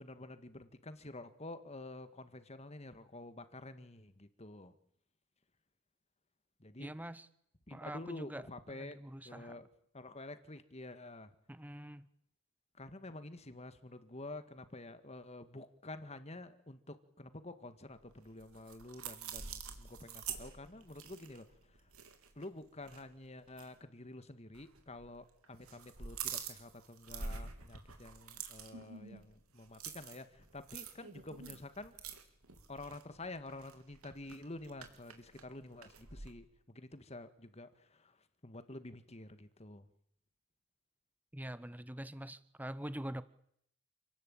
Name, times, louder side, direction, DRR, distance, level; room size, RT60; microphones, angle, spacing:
voice 1, 0.0-4.7 6.6-6.9 7.7-9.7 9.9-11.3 12.8-21.5 22.4-31.9 32.7-38.2 38.4-39.9, left 2 dB, 30° left, 11 dB, 1.8 m, -49 dB
voice 2, 6.8-7.3 7.7-9.6 11.5-12.1 41.3-43.2, right 1 dB, 10° right, 15 dB, 1.0 m, -45 dB
sound 1, 18.0-22.5 22.8-23.0 23.5-23.7 24.5-25.2 25.4-36.3, right 6 dB, 85° right, 3.5 m, -47 dB
29.0 x 18.5 x 8.9 m, 0.71 s
head